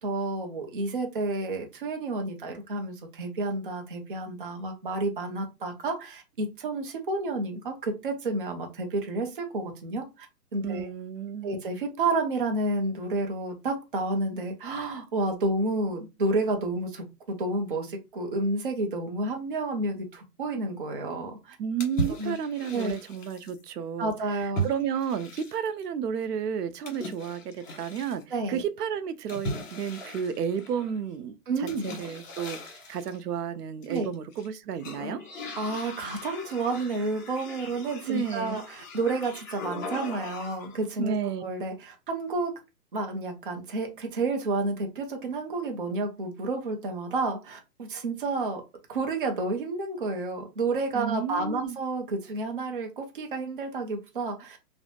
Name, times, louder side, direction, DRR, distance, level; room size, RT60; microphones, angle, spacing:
voice 1, 0.0-10.3 10.5-10.9 11.4-21.6 22.2-22.4 22.7-22.9 24.0-24.7 28.3-28.6 31.5-31.9 33.9-34.1 35.6-42.5 42.9-48.6 48.9-54.6, right 2 dB, 40° right, 0.4 m, -30 dB
voice 2, 10.6-11.6 21.6-24.1 24.4-28.2 28.5-35.2 38.1-38.6 41.0-41.4 50.9-51.8, right 8 dB, 85° right, 0.6 m, -32 dB
sound 1, 21.8-23.6 24.5-25.8 26.8-28.2 29.3-31.0 31.7-33.2 33.8-34.5 34.8-40.8, right 1 dB, 55° left, 1.3 m, -38 dB
2.5 x 2.0 x 2.8 m
hypercardioid pair, 155°, 46 cm